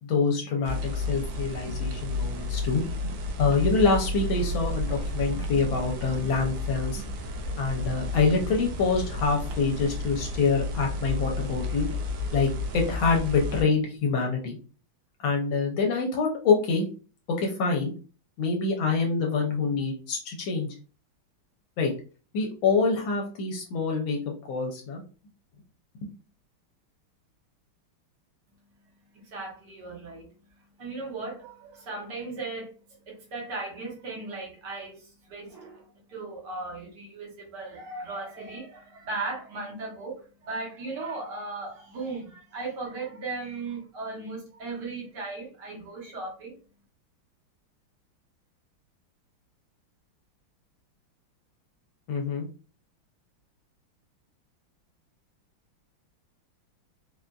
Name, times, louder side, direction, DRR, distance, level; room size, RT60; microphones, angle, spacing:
voice 1, 0.0-2.8 3.4-7.0 7.6-11.9 12.3-14.6 15.2-16.9 17.4-17.9 18.4-20.7 21.8-21.9 22.3-24.2 24.5-25.0 52.1-52.5, left 4 dB, 75° left, 1.3 m, -26 dB
sound 1, 0.6-13.6, left 2 dB, 90° right, 1.5 m, -32 dB
voice 2, 29.1-30.3 30.8-32.7 33.1-46.6, right 3 dB, 60° right, 1.5 m, -37 dB
4.0 x 2.4 x 2.3 m
omnidirectional pair, 2.3 m